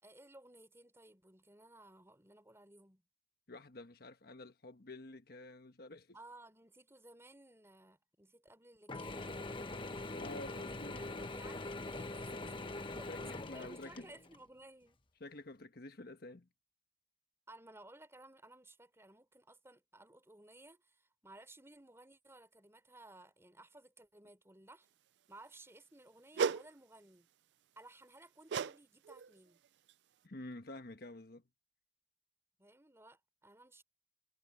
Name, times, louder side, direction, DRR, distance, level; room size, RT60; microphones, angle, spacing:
voice 1, 0.0-3.0 6.1-9.2 10.5-12.6 13.0-13.1 13.5-15.0 17.5-24.9 25.3-27.3 27.8-29.6 32.6-33.8, right 2 dB, 15° right, 4.1 m, -58 dB
voice 2, 3.5-6.1 10.1-11.0 12.8-14.1 15.2-16.5 30.2-31.4, left 2 dB, 60° left, 1.3 m, -49 dB
Mechanisms / Drill, 8.9-14.4, left 2 dB, 30° left, 1.1 m, -43 dB
sound 1, 26.4-26.7 28.5-28.8 29.1-29.3 29.9-30.0, right 6 dB, 75° right, 0.4 m, -34 dB
head